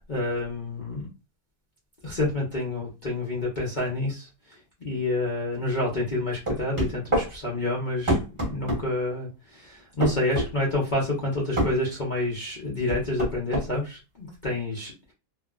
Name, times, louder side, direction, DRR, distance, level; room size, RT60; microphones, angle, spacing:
voice 1, 0.1-1.1 2.0-8.2 8.5-15.1, left 2 dB, 45° left, -4 dB, 0.6 m, -28 dB
sound 1, 6.5-7.3 8.1-8.8 10.0-10.5 11.6-11.7 12.9-13.7, right 1 dB, 25° right, 0.7 m, -25 dB
2.8 x 2.4 x 2.3 m, 0.28 s
omnidirectional pair, 1.7 m